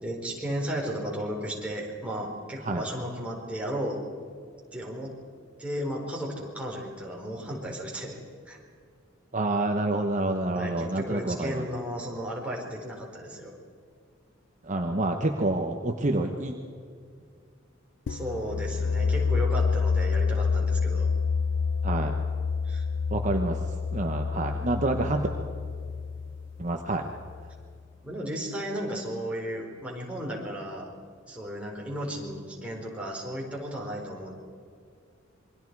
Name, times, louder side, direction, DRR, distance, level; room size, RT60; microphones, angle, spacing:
voice 1, 0.0-4.0 4.7-5.1 5.6-8.2 8.4-8.6 10.5-13.5 18.1-21.1 22.6-22.9 28.0-30.9 31.3-34.3, equal, 5° right, -2 dB, 4.4 m, -34 dB
voice 2, 9.3-11.7 14.6-16.5 21.8-22.2 23.1-23.6 23.9-25.3 26.6-27.1, right 2 dB, 40° right, 3 dB, 1.2 m, -28 dB
sound 1, 18.1-27.7, left 5 dB, 65° left, 0.4 m, -28 dB
27.5 x 23.0 x 4.8 m, 2.2 s
head